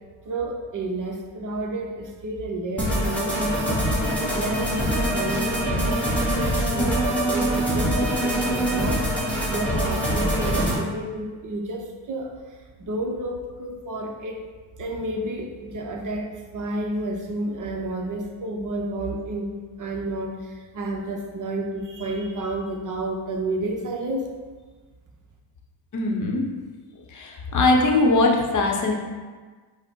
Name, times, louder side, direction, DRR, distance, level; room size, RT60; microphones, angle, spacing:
voice 1, 0.3-3.9 4.3-9.1 9.5-12.3 12.8-14.4 14.8-19.5 19.8-24.3, right 1 dB, 40° right, 2 dB, 0.7 m, -31 dB
sound 1, 2.8-10.8, equal, 5° left, 0.9 m, -24 dB
voice 2, 25.9-26.4 27.1-28.9, left 2 dB, 40° left, 0 dB, 0.8 m, -21 dB
5.4 x 2.1 x 4.4 m, 1.4 s
cardioid pair, 105°, 49 cm